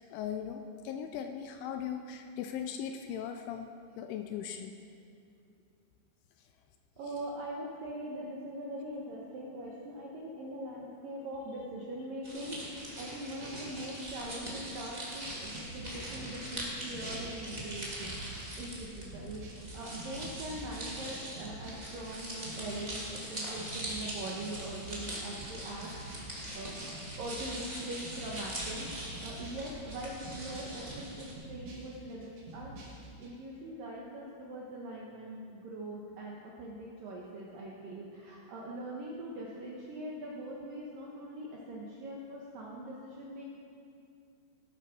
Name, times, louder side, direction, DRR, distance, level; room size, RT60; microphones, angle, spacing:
voice 1, 0.1-3.7 4.0-4.8, left 8 dB, 80° left, 6 dB, 2.8 m, -38 dB
voice 2, 7.0-25.9 26.2-26.8 27.2-32.7 33.2-43.4, right 1 dB, 75° right, -3 dB, 2.0 m, -42 dB
sound 1, 12.2-31.3, right 1 dB, 20° right, 1.0 m, -42 dB
sound 2, 15.5-33.3, right 2 dB, 50° right, 2.9 m, -49 dB
17.0 x 9.2 x 6.0 m, 2.5 s
omnidirectional pair, 5.8 m